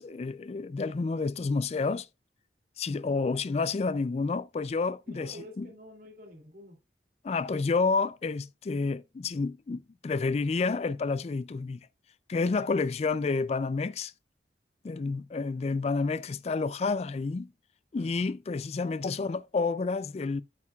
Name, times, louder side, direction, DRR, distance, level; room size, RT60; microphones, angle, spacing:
voice 1, 0.0-2.1 2.8-5.7 7.2-11.8 12.3-14.1 14.8-17.5 17.9-20.4, left 4 dB, 35° left, 0.3 m, -29 dB
voice 2, 5.1-6.8 18.8-19.1, equal, 55° right, 2.8 m, -49 dB
8.7 x 8.4 x 2.4 m
head